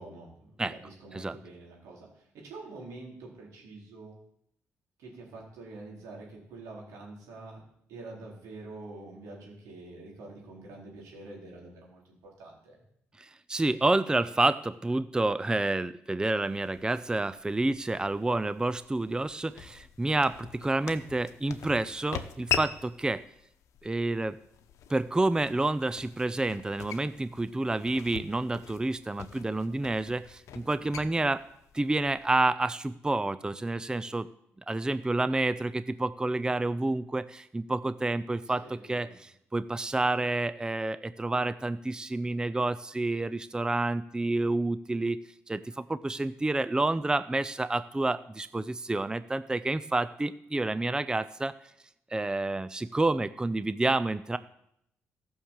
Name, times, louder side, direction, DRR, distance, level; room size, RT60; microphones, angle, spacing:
voice 1, 0.0-4.2 5.0-7.6 7.9-12.8 30.6-31.0 38.4-39.2, right 2 dB, 85° right, -2 dB, 4.3 m, -46 dB
voice 2, 13.2-23.2 23.8-24.4 24.9-31.4 31.7-34.3 34.7-45.2 45.5-51.5 52.1-54.4, right 2 dB, 15° right, 14 dB, 0.5 m, -29 dB
sound 1, 16.4-32.5, left 9 dB, 80° left, 0.9 m, -42 dB
14.5 x 6.4 x 7.3 m, 0.76 s
supercardioid pair, 65°, 5 cm